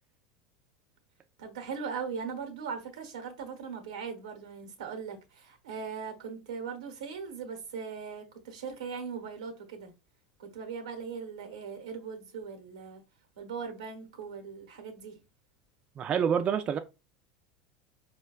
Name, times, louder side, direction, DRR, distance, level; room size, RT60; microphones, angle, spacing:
voice 1, 1.4-9.9 10.4-13.0 13.4-15.2, right 6 dB, 85° right, 0.8 m, -39 dB
voice 2, 16.0-16.8, right 7 dB, 35° right, 0.3 m, -27 dB
4.4 x 2.2 x 2.3 m
hypercardioid pair, 95°, 3 cm